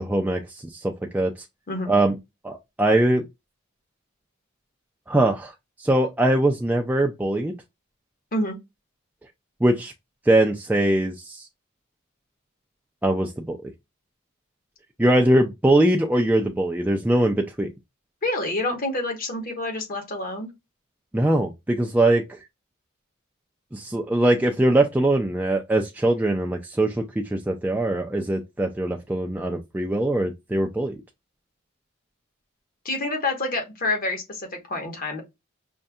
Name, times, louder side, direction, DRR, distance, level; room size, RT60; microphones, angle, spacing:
voice 1, 0.0-1.3 1.9-2.2 2.4-3.2 5.1-5.5 5.8-7.5 9.6-9.9 10.3-11.5 13.0-13.6 15.0-17.7 21.1-22.4 23.7-31.0, right 1 dB, 10° right, 0.3 m, -22 dB
voice 2, 18.2-20.5 32.8-35.2, left 2 dB, 45° left, 1.2 m, -27 dB
5.3 x 2.6 x 2.3 m
head